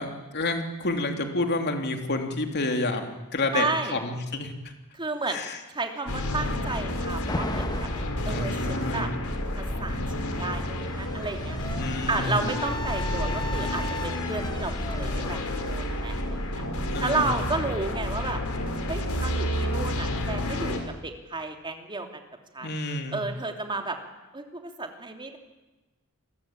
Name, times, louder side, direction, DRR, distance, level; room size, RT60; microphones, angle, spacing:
voice 1, 0.0-4.7 5.3-5.6 8.2-9.1 11.8-12.5 16.8-17.7 22.6-23.2, left 2 dB, 50° left, 4 dB, 3.3 m, -30 dB
voice 2, 3.5-4.0 4.9-7.9 8.3-9.1 9.5-11.6 12.1-16.6 17.0-18.4 18.9-22.2 22.5-22.7 23.1-24.0 24.3-25.4, right 3 dB, 20° right, 4 dB, 3.0 m, -32 dB
sound 1, 6.1-20.8, left 1 dB, 75° left, 4.5 m, -30 dB
Alarm, 7.3-8.2 9.5-17.2, left 2 dB, 20° left, 1.8 m, -38 dB
28.0 x 21.5 x 8.9 m, 1.1 s
head